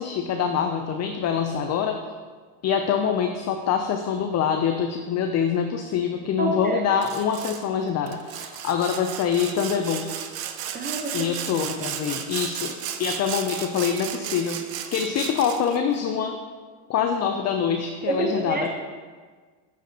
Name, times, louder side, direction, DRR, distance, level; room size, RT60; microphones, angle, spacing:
voice 1, 0.0-2.0 2.6-10.3 11.1-16.4 16.9-18.7, left 7 dB, 35° left, 5 dB, 0.6 m, -25 dB
voice 2, 6.4-6.8 10.7-11.3 18.1-18.7, right 2 dB, 20° right, 3 dB, 1.0 m, -27 dB
Sawing, 7.0-7.6 8.1-15.8, right 9 dB, 50° right, 0.8 m, -34 dB
8.7 x 7.7 x 2.9 m, 1.5 s
supercardioid pair, 100°, 47 cm